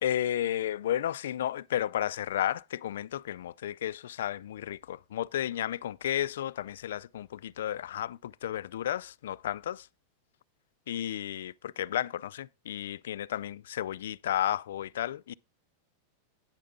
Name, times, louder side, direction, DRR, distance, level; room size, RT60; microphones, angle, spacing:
voice 1, 0.0-9.9 10.9-15.3, left 11 dB, 90° left, 0.4 m, -33 dB
9.6 x 6.7 x 3.7 m
supercardioid pair, 170°, 0 cm